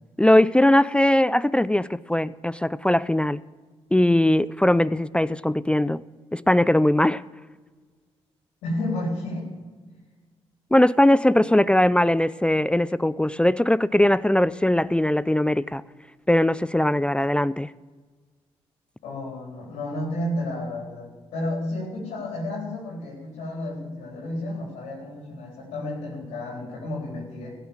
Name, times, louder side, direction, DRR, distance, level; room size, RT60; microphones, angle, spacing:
voice 1, 0.2-3.4 3.9-6.0 6.3-7.2 10.7-15.8 16.3-17.7, left 1 dB, 10° left, 18 dB, 0.4 m, -20 dB
voice 2, 8.6-9.5 19.0-27.6, left 1 dB, 90° left, -5 dB, 4.3 m, -31 dB
16.0 x 7.2 x 7.4 m, 1.4 s
supercardioid pair, 60°, 12 cm